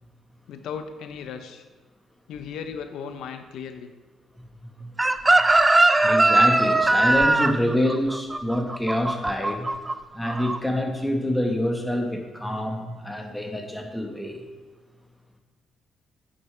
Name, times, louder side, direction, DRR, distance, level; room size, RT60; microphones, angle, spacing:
voice 1, 0.5-1.6 2.3-3.9, left 6 dB, 80° left, 8 dB, 0.5 m, -36 dB
voice 2, 4.6-4.9 6.0-9.7 10.1-14.4, left 1 dB, 5° left, 3 dB, 1.2 m, -26 dB
Chicken rooster, 5.0-9.9 10.2-10.6, right 2 dB, 15° right, 0.4 m, -19 dB
8.5 x 6.6 x 3.3 m, 1.2 s
cardioid pair, 90°, 0 cm